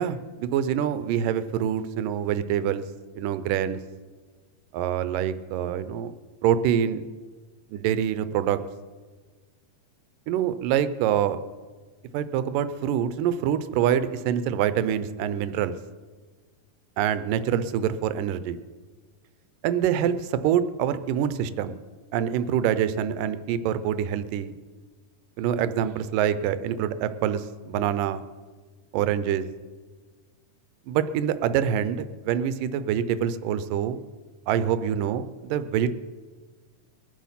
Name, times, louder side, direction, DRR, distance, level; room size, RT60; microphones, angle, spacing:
voice 1, 0.0-2.8 3.2-3.8 4.7-6.1 6.4-7.1 7.7-8.6 10.3-11.4 12.1-15.8 17.0-18.6 19.6-21.8 22.1-24.5 25.4-28.2 28.9-29.5 30.9-34.0 34.5-35.9, right 9 dB, 85° right, 13 dB, 2.3 m, -25 dB
22.0 x 7.5 x 5.7 m, 1.4 s
omnidirectional pair, 3.8 m